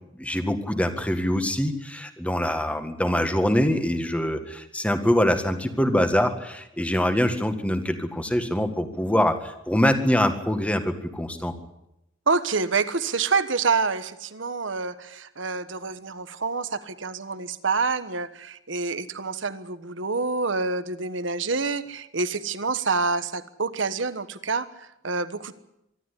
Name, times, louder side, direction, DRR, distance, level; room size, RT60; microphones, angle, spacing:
voice 1, 0.2-11.5, equal, 5° left, 7 dB, 1.8 m, -24 dB
voice 2, 12.3-25.5, right 4 dB, 70° right, 12 dB, 1.3 m, -27 dB
25.0 x 12.5 x 9.9 m, 0.85 s
head